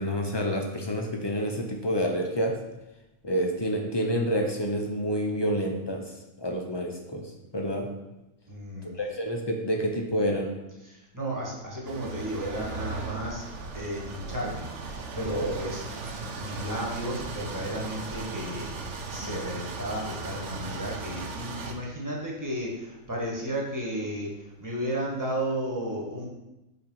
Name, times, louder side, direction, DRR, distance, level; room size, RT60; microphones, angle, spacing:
voice 1, 0.0-2.5 3.2-6.0 6.4-7.9 8.8-10.5 15.3-15.6, equal, 30° left, 2 dB, 0.4 m, -28 dB
voice 2, 8.5-8.9 10.8-13.4 13.7-15.8 16.4-18.7 19.1-24.3 24.6-26.3, right 1 dB, 15° right, -3 dB, 1.4 m, -33 dB
sound 1, 11.8-21.7, right 3 dB, 60° right, 1.0 m, -37 dB
5.3 x 4.4 x 5.4 m, 0.97 s
omnidirectional pair, 1.5 m